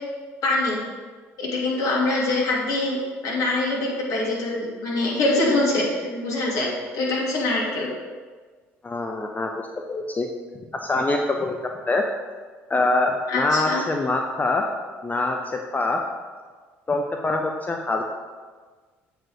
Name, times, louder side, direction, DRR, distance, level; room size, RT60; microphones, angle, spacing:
voice 1, 0.4-0.8 1.4-3.0 3.2-6.7 6.9-7.9 13.3-13.8, left 2 dB, 55° left, -3 dB, 2.3 m, -24 dB
voice 2, 8.8-10.3 10.7-12.1 12.7-14.6 15.0-16.0 16.9-18.0, left 2 dB, 25° left, 3 dB, 0.7 m, -24 dB
7.6 x 5.0 x 4.7 m, 1.5 s
hypercardioid pair, 60°, 7 cm